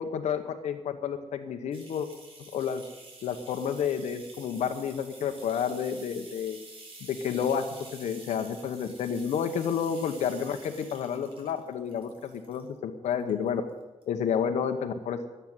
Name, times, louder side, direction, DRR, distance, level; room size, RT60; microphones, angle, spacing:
voice 1, 0.0-2.1 2.4-2.8 3.2-6.6 7.0-7.7 7.9-13.6 14.1-15.3, left 7 dB, 90° left, 5 dB, 0.9 m, -30 dB
sound 1, 1.7-12.7 13.1-13.7 14.0-14.1, right 2 dB, 50° right, 4.2 m, -49 dB
13.5 x 8.1 x 9.5 m, 1.1 s
cardioid pair, 90°, 11 cm